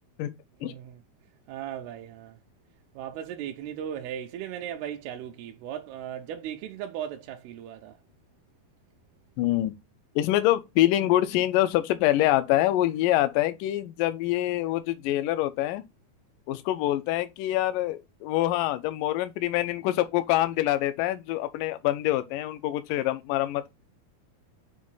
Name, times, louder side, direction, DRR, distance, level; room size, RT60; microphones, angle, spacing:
voice 1, 0.6-1.0 1.5-2.4 3.0-8.0, right 10 dB, 85° right, 2.5 m, -37 dB
voice 2, 9.4-9.7 10.2-15.8 16.5-23.7, left 15 dB, 80° left, 2.0 m, -25 dB
7.4 x 2.6 x 5.4 m
omnidirectional pair, 4.4 m